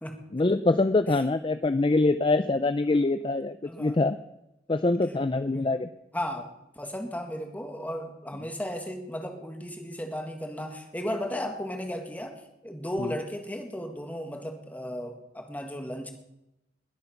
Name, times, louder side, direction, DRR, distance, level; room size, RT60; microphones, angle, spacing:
voice 1, 0.3-4.2 4.7-5.9 13.0-13.1, left 2 dB, 30° left, 11 dB, 0.5 m, -24 dB
voice 2, 6.1-6.5 6.8-12.3 12.6-16.1, equal, 10° left, 4 dB, 1.9 m, -35 dB
21.0 x 8.1 x 5.9 m, 0.88 s
head